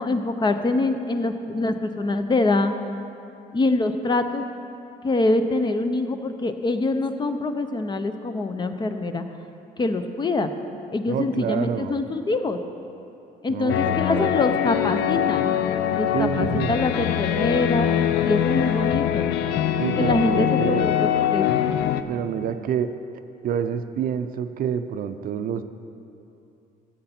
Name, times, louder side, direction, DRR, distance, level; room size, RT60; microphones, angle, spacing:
voice 1, 0.0-2.7 3.5-4.4 5.0-9.2 9.8-10.5 10.9-12.6 13.4-15.5 15.9-17.9 18.2-19.3 20.0-21.7, left 2 dB, 25° left, 8 dB, 0.6 m, -24 dB
voice 2, 11.1-12.0 13.5-14.4 16.1-16.7 19.8-20.9 22.1-22.9 23.4-25.6, right 8 dB, 55° right, 10 dB, 0.5 m, -27 dB
sound 1, 13.7-22.0, left 10 dB, 75° left, 0.5 m, -23 dB
13.5 x 8.0 x 4.3 m, 2.7 s
cardioid pair, 110°, 17 cm